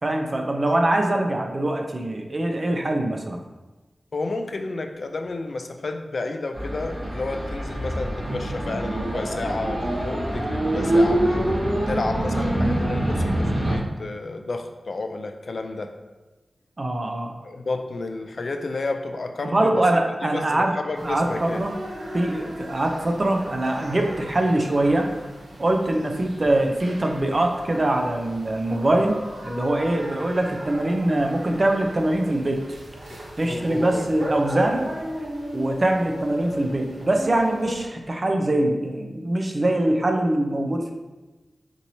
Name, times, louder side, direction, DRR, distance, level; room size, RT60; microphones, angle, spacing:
voice 1, 0.0-3.4 16.8-17.3 19.4-20.8 21.0-21.7 22.1-25.1 25.6-32.6 33.4-34.9 35.5-40.9, right 1 dB, 40° right, 3 dB, 0.4 m, -23 dB
voice 2, 4.1-11.3 11.9-15.9 17.4-19.8 20.2-21.6 33.1-34.1, left 3 dB, 65° left, 6 dB, 0.3 m, -31 dB
sound 1, 6.5-13.8, right 1 dB, 60° right, 1.4 m, -24 dB
sound 2, 20.9-37.9, equal, 90° right, 0.7 m, -37 dB
4.5 x 2.8 x 2.6 m, 1.1 s
wide cardioid pair, 90°, 0 cm